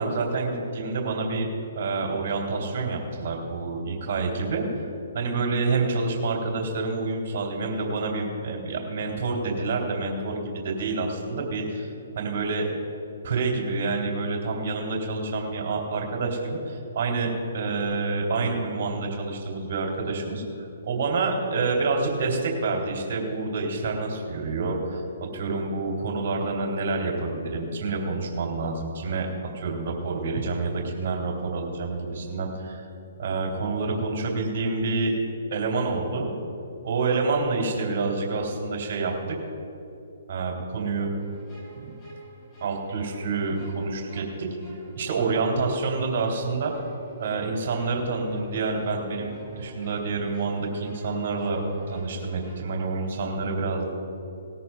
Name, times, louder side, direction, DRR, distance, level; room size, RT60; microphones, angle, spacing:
voice 1, 0.0-1.5 1.7-12.7 13.2-32.8 33.2-35.1 35.5-36.3 36.8-39.4 40.3-41.1 41.7-41.9 42.6-44.5 44.9-46.7 47.2-51.6 51.9-53.9, right 3 dB, 45° right, 0 dB, 3.0 m, -28 dB
sound 1, 41.2-52.6, equal, 20° left, 2.9 m, -44 dB
18.5 x 13.5 x 2.4 m, 2.8 s
hypercardioid pair, 140°, 0 cm